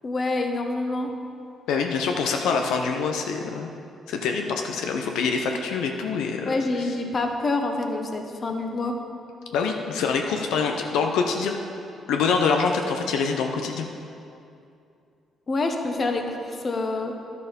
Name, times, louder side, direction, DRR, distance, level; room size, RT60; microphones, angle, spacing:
voice 1, 0.0-1.1 6.5-8.9 15.5-17.1, left 2 dB, 40° left, 4 dB, 1.0 m, -27 dB
voice 2, 1.7-3.7 4.1-6.9 9.5-11.6 12.1-13.9, left 5 dB, 90° left, 3 dB, 0.6 m, -25 dB
11.0 x 6.7 x 5.1 m, 2.6 s
cardioid pair, 90°, 0 cm